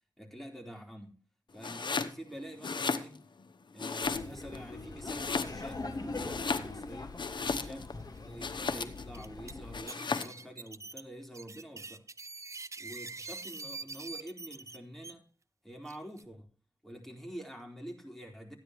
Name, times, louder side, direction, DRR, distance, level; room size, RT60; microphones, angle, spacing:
voice 1, 0.2-1.2 1.5-3.2 3.7-7.2 7.6-12.1 12.8-15.2 15.6-16.5 16.8-18.6, equal, 5° left, 1 dB, 4.1 m, -47 dB
Domestic sounds home sounds, 1.6-2.2 2.5-3.4 3.8-4.6 5.0-5.8 6.1-7.9 8.4-9.1 9.7-10.4, left 4 dB, 85° left, 0.9 m, -35 dB
Laughter, 4.0-9.8, left 3 dB, 55° left, 1.8 m, -42 dB
sound 1, 5.1-5.3 5.6-5.7 6.3-6.6 7.4-7.5 8.0-8.1 9.0-9.5 9.9-15.1 15.8-16.2, right 3 dB, 40° right, 0.6 m, -44 dB
14.0 x 10.0 x 3.1 m, 0.37 s
wide cardioid pair, 70°, 8 cm